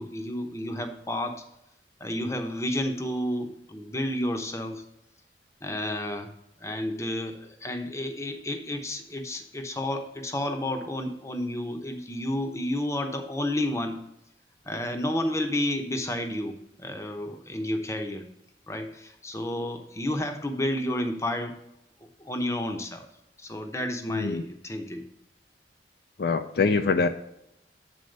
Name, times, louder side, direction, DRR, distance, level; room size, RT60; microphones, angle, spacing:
voice 1, 0.0-1.4 2.0-4.8 5.6-6.3 6.6-14.0 14.7-18.3 18.7-21.6 22.2-23.0 23.4-25.0, left 1 dB, 15° left, 5 dB, 0.8 m, -31 dB
voice 2, 24.1-24.4 26.2-27.1, left 4 dB, 55° left, 8 dB, 0.4 m, -24 dB
7.9 x 4.2 x 5.3 m, 0.82 s
head